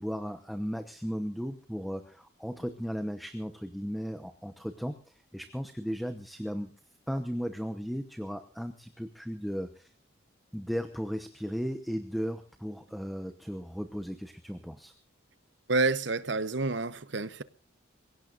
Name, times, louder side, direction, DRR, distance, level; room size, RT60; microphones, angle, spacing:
voice 1, 0.0-6.7 7.1-9.9 10.5-14.9, equal, ahead, 0.9 m, -36 dB
voice 2, 15.7-17.4, right 3 dB, 65° right, 0.9 m, -28 dB
27.5 x 17.0 x 2.5 m
head